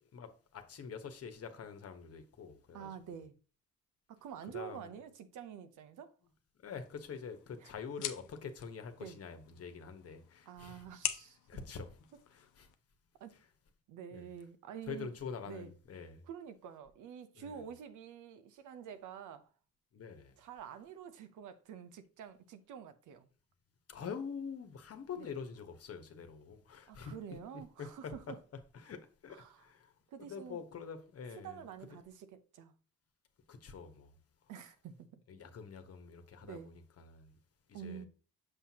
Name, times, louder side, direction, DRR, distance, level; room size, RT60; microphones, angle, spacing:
voice 1, 0.1-3.2 4.5-4.9 6.6-10.9 11.5-12.0 12.3-12.7 13.3-13.5 14.1-14.3 14.9-16.3 17.3-17.6 19.9-20.4 23.9-27.1 27.5-28.3 28.7-29.9 30.2-32.0 33.5-34.2 34.4-34.5 35.3-37.4 37.7-38.1, left 6 dB, 50° left, 1.2 m, -46 dB
voice 2, 2.7-3.3 4.1-6.1 7.6-7.7 9.0-9.2 10.5-11.4 13.2-13.4 13.9-15.1 15.5-15.7 16.3-19.5 20.4-23.3 25.2-25.3 26.9-28.4 29.3-29.6 30.1-30.6 31.4-32.7 34.5-35.2 36.4-36.7 37.7-38.1, right 8 dB, 85° right, 0.8 m, -48 dB
sound 1, 6.7-12.8, left 11 dB, 80° left, 0.7 m, -45 dB
6.8 x 5.8 x 2.9 m
cardioid pair, 90°, 30 cm